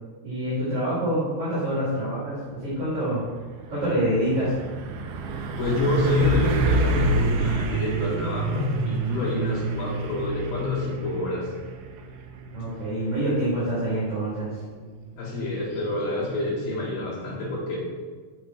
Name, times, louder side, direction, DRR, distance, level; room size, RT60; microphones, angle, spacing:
voice 1, 0.2-3.2 3.7-4.6 12.5-14.6, right 1 dB, 30° right, -12 dB, 3.6 m, -26 dB
Truck, 2.6-2.9 3.2-15.8, right 3 dB, 75° right, 2.5 m, -29 dB
voice 2, 5.6-11.5 15.2-17.8, left 2 dB, 55° left, -5 dB, 3.6 m, -27 dB
8.7 x 8.1 x 4.7 m, 1.5 s
omnidirectional pair, 4.9 m